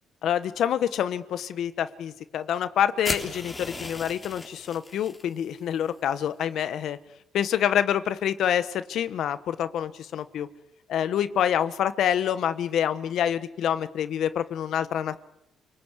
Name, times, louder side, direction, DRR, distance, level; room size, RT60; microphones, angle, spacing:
voice 1, 0.2-7.0 7.3-10.5 10.9-15.2, left 9 dB, 75° left, 13 dB, 1.2 m, -27 dB
sound 1, 3.0-5.2, left 2 dB, 25° left, 3.7 m, -36 dB
29.0 x 19.5 x 8.2 m, 0.82 s
cardioid pair, 90°, 0 cm